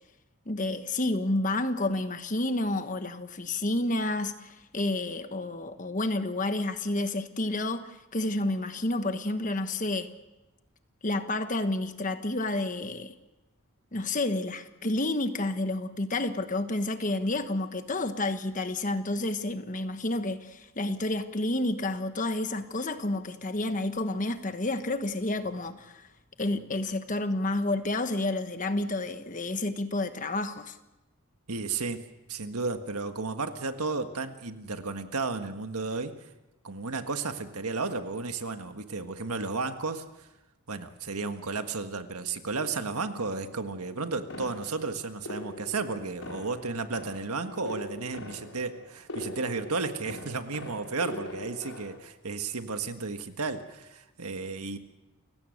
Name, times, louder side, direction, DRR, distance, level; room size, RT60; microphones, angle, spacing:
voice 1, 0.5-10.1 11.0-13.1 13.9-26.1 26.4-30.8, left 2 dB, 35° left, 1.3 m, -30 dB
voice 2, 31.5-36.1 36.6-40.0 40.7-54.8, right 4 dB, 85° right, 1.6 m, -33 dB
sound 1, 44.3-52.0, left 1 dB, 85° left, 4.1 m, -42 dB
29.5 x 16.5 x 6.6 m
head